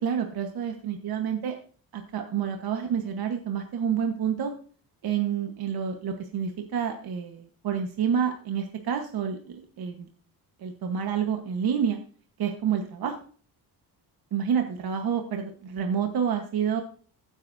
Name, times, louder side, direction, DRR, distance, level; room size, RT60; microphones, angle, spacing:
voice 1, 0.0-1.5 1.9-4.5 5.0-10.1 10.6-12.0 12.4-13.2 14.3-16.8, right 8 dB, 60° right, 4 dB, 1.2 m, -28 dB
15.5 x 8.2 x 2.6 m, 0.43 s
cardioid pair, 130°, 41 cm